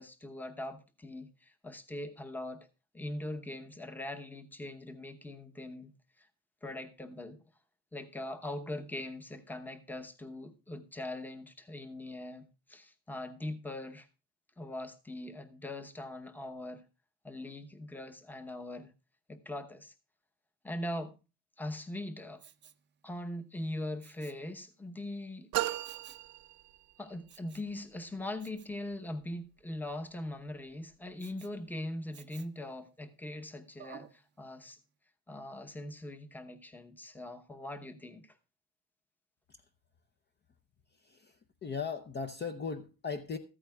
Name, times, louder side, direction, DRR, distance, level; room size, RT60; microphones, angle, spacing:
voice 1, 0.0-2.7 2.9-6.3 6.6-7.4 7.9-14.1 14.6-16.8 17.2-18.9 19.3-19.9 20.6-21.1 21.6-22.4 23.0-25.5 27.0-34.8 35.3-38.4, left 1 dB, 5° left, 0.9 m, -41 dB
Respiratory sounds, 22.4-22.9 24.0-24.5 25.8-26.3 27.3-27.7 28.4-28.7 31.2-31.6 32.1-32.6 33.8-34.2 34.7-34.8, right 9 dB, 30° right, 0.6 m, -54 dB
sound 1, 25.5-27.2, right 17 dB, 75° right, 0.7 m, -36 dB
voice 2, 41.0-43.4, left 5 dB, 30° left, 0.7 m, -38 dB
14.0 x 13.5 x 2.4 m
cardioid pair, 115°, 35 cm